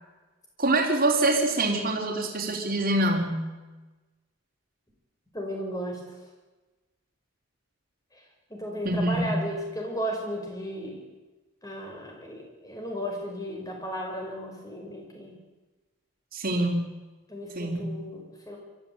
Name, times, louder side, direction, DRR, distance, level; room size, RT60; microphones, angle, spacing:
voice 1, 0.6-3.5 8.8-9.3 16.3-16.9 17.6-18.1, right 2 dB, 40° right, 0 dB, 3.8 m, -25 dB
voice 2, 5.3-6.0 8.5-11.0 11.6-15.3 17.3-18.6, equal, 15° left, 0 dB, 5.4 m, -34 dB
22.5 x 14.0 x 8.6 m, 1.2 s
head